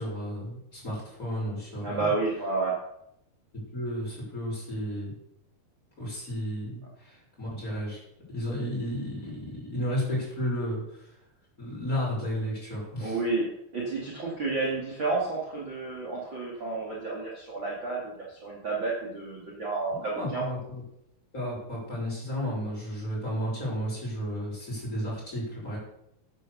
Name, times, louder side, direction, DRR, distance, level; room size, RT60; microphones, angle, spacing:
voice 1, 0.0-2.1 3.7-5.1 6.0-8.0 8.3-11.1 11.6-13.2 19.9-20.8 21.3-25.8, equal, 20° left, -5 dB, 6.5 m, -33 dB
voice 2, 1.8-2.8 13.0-20.4, right 3 dB, 35° right, -3 dB, 2.9 m, -31 dB
11.0 x 10.5 x 6.9 m, 0.78 s
omnidirectional pair, 4.4 m